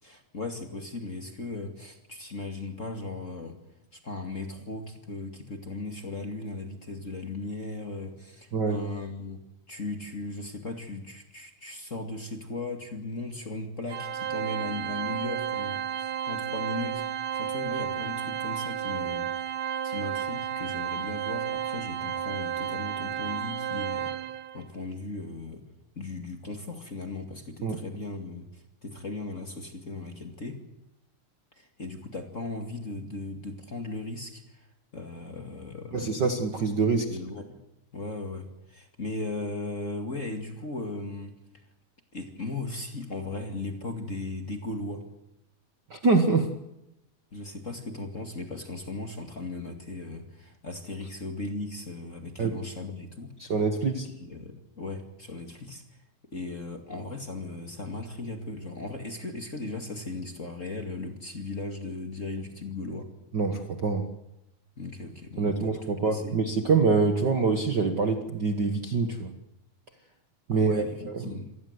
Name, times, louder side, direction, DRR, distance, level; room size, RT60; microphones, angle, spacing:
voice 1, 0.0-3.6 3.9-9.4 9.7-19.3 19.8-25.7 25.9-30.6 31.6-34.7 34.9-36.3 37.1-37.6 37.9-41.3 42.1-45.1 47.3-53.5 54.0-55.8 56.3-63.1 64.8-65.7 66.0-66.4 70.5-71.5, left 2 dB, 25° left, 5 dB, 2.2 m, -37 dB
voice 2, 8.5-8.8 27.6-27.8 35.9-37.1 45.9-46.5 52.4-52.6 53.4-54.1 63.3-64.1 65.4-69.3 70.5-71.4, right 4 dB, 45° right, 6 dB, 1.7 m, -25 dB
Organ, 13.9-24.6, right 9 dB, 70° right, 1.2 m, -32 dB
27.0 x 19.0 x 8.1 m, 0.86 s
omnidirectional pair, 3.6 m